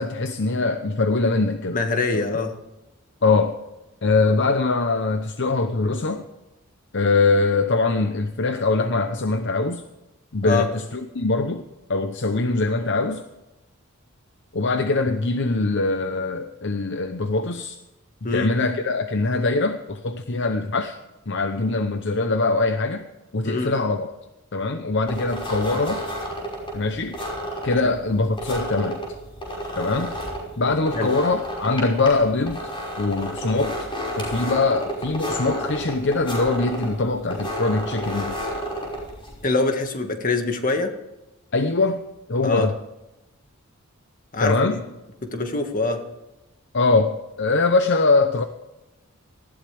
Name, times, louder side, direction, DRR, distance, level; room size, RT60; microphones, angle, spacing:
voice 1, 0.0-1.8 2.1-2.2 3.2-3.6 4.0-6.2 6.9-9.8 10.3-11.6 11.9-13.2 14.5-17.8 18.3-21.0 21.3-23.1 23.3-24.1 24.5-26.0 26.7-27.2 27.6-29.0 29.8-30.1 30.6-32.7 33.0-33.8 34.2-38.4 41.5-42.0 42.3-42.7 44.4-44.8 46.7-48.5, left 3 dB, 55° left, 8 dB, 0.8 m, -22 dB
voice 2, 1.7-2.5 10.4-10.7 18.2-18.5 23.4-23.7 27.8-27.9 30.9-31.1 39.4-40.9 42.4-42.7 44.3-44.8 45.2-46.0, left 3 dB, 40° left, 5 dB, 1.9 m, -24 dB
sound 1, 25.1-39.5, equal, 25° left, 5.7 m, -31 dB
19.5 x 14.5 x 3.5 m, 1.0 s
head